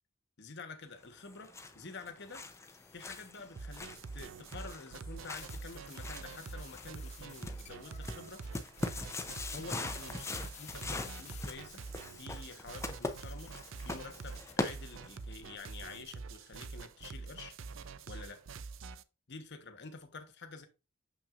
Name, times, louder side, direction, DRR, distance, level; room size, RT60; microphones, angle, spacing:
voice 1, 0.4-2.5 2.9-8.4 9.5-11.8 12.2-17.6 18.1-18.4 19.3-20.7, left 4 dB, 55° left, 1.1 m, -49 dB
sound 1, 1.1-15.3, left 2 dB, 15° left, 0.6 m, -42 dB
sound 2, 2.5-3.6 5.3-14.5, left 7 dB, 30° left, 1.1 m, -55 dB
sound 3, 3.6-19.0, right 4 dB, 65° right, 0.5 m, -46 dB
6.6 x 5.9 x 2.5 m
head